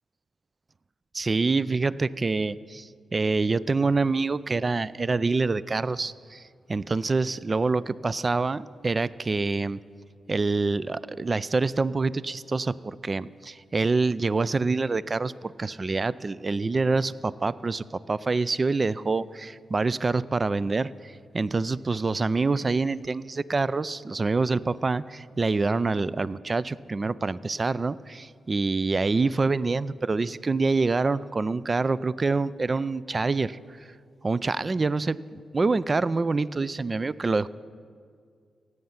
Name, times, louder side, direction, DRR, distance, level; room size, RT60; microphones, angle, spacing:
voice 1, 1.1-6.4 6.7-9.8 10.3-33.6 34.2-37.5, right 3 dB, 40° right, 19 dB, 0.4 m, -26 dB
17.0 x 7.9 x 5.7 m, 2.1 s
supercardioid pair, 45°, 0 cm